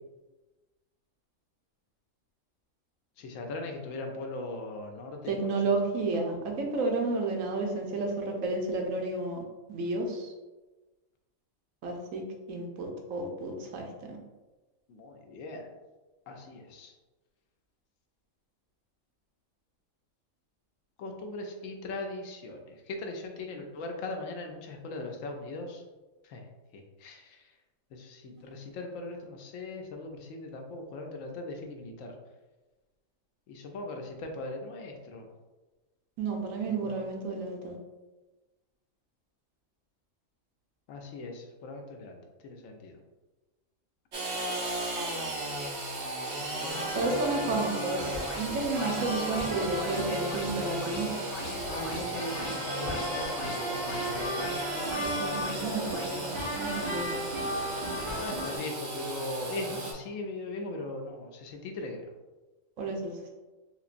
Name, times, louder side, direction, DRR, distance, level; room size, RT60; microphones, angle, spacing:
voice 1, 3.2-5.7 14.9-15.7 16.3-16.9 21.0-25.8 26.2-26.4 26.7-27.4 27.9-32.1 33.5-35.3 36.8-37.1 40.9-43.0 46.6-47.1 47.4-47.6 51.7-54.6 58.2-62.0, left 2 dB, 75° left, 3 dB, 0.9 m, -39 dB
voice 2, 5.3-9.4 9.7-10.3 11.8-12.2 12.5-13.9 36.2-37.8 46.9-51.1 55.0-57.2 62.8-63.3, right 3 dB, 80° right, 2 dB, 1.0 m, -31 dB
Engine / Sawing, 44.1-59.9, right 1 dB, 60° right, 1.0 m, -36 dB
sound 1, 46.7-58.6, right 1 dB, 40° right, 1.3 m, -36 dB
sound 2, 48.0-56.2, left 2 dB, 50° left, 0.8 m, -44 dB
3.6 x 2.9 x 2.5 m, 1.2 s
omnidirectional pair, 1.4 m